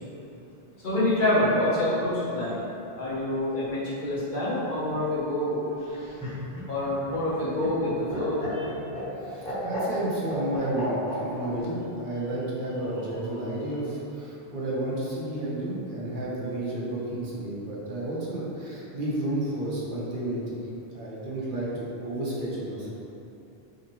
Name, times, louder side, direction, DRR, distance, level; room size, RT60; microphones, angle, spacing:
voice 1, 0.8-2.6 3.0-5.7 6.7-8.7, left 1 dB, 55° left, -9 dB, 1.1 m, -26 dB
Laughter, 5.8-11.5 12.8-13.4, equal, 5° left, 0.8 m, -35 dB
voice 2, 9.2-20.6 20.9-22.9, right 1 dB, 55° right, -7 dB, 0.9 m, -31 dB
5.0 x 2.1 x 3.0 m, 2.9 s
omnidirectional pair, 1.0 m